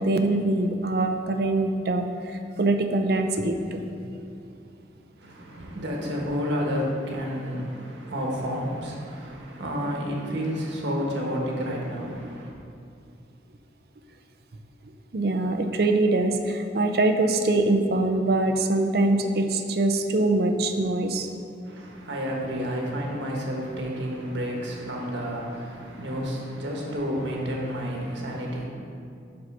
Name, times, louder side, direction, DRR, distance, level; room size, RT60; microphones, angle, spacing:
voice 1, 0.0-2.1 2.6-4.1 15.1-21.3, right 2 dB, 55° right, 5 dB, 0.5 m, -23 dB
voice 2, 5.2-12.6 21.6-28.7, equal, 85° right, -1 dB, 1.3 m, -30 dB
5.6 x 5.4 x 5.4 m, 2.4 s
head